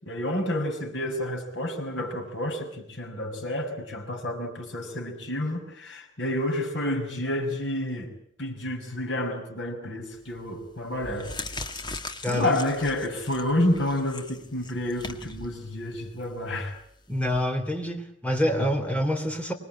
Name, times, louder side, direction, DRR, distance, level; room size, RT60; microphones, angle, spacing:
voice 1, 0.0-8.1 8.4-11.3 12.3-16.8, left 1 dB, 60° left, 2 dB, 6.4 m, -29 dB
sound 1, 10.1-10.4 10.9-17.4, left 3 dB, 20° left, 1.8 m, -40 dB
voice 2, 12.2-12.6 17.1-19.5, equal, 5° left, 5 dB, 3.3 m, -26 dB
25.5 x 21.0 x 9.0 m, 0.67 s
head